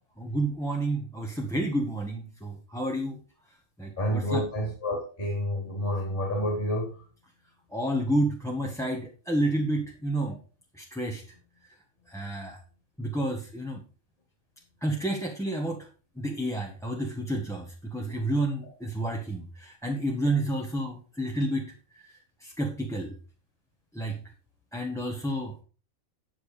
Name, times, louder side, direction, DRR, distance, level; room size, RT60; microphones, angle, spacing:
voice 1, 0.2-3.2 3.8-4.4 7.7-10.4 10.8-11.2 12.1-12.6 13.0-13.8 14.8-15.9 16.2-21.7 22.4-23.1 23.9-24.2 24.7-25.6, right 1 dB, ahead, 0 dB, 1.2 m, -30 dB
voice 2, 4.0-6.9 18.6-18.7, equal, 35° left, -2 dB, 4.1 m, -29 dB
11.0 x 6.8 x 5.0 m, 0.38 s
omnidirectional pair, 1.5 m